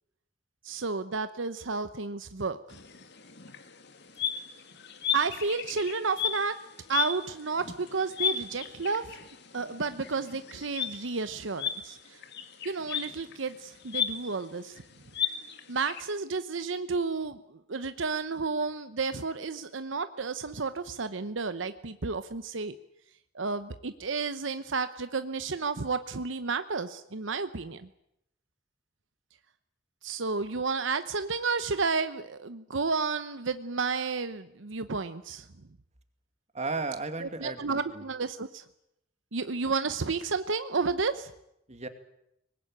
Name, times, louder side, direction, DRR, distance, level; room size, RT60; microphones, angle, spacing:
voice 1, 0.6-2.6 5.1-6.5 6.9-9.2 9.5-12.2 12.6-14.8 15.7-22.8 23.3-27.9 30.0-35.5 37.2-38.6 39.3-41.3, right 4 dB, 80° right, 11 dB, 0.9 m, -31 dB
sound 1, 2.7-16.0, left 7 dB, 60° left, 2.2 m, -35 dB
voice 2, 36.5-38.1 41.7-41.9, right 3 dB, 35° right, 8 dB, 2.3 m, -35 dB
24.0 x 20.0 x 9.0 m, 0.82 s
head